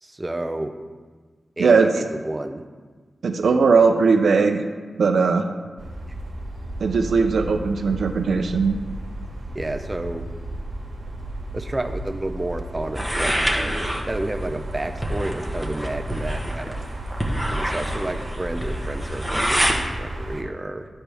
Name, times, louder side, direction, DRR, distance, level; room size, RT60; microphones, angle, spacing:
voice 1, 0.0-0.7 1.6-1.9 2.2-2.6 6.1-6.2 9.5-10.3 11.5-13.3 14.1-16.8 17.5-20.9, right 1 dB, 25° right, 5 dB, 0.6 m, -30 dB
voice 2, 1.6-2.0 3.2-4.6 4.9-5.5 6.8-8.8, right 4 dB, 85° right, 5 dB, 0.5 m, -19 dB
sound 1, 5.8-20.4, right 1 dB, 65° right, 1.6 m, -33 dB
sound 2, 13.0-19.8, equal, 5° left, 1.2 m, -27 dB
12.5 x 4.4 x 3.4 m, 1.4 s
cardioid pair, 60°, 0 cm